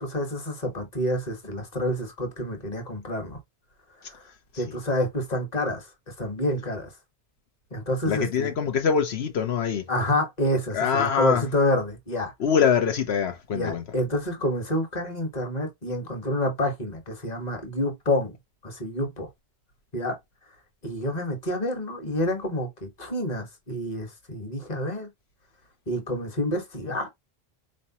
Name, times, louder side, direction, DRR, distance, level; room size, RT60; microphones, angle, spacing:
voice 1, 0.0-3.4 4.1-4.2 4.6-5.9 6.2-6.9 7.7-8.5 9.9-12.3 13.5-18.3 18.6-19.3 19.9-20.2 20.8-25.1 25.9-27.1, left 1 dB, 40° left, 1.4 m, -28 dB
voice 2, 8.1-9.8 10.7-11.4 12.4-13.8, left 7 dB, 85° left, 1.1 m, -24 dB
4.2 x 3.3 x 2.8 m
omnidirectional pair, 1.0 m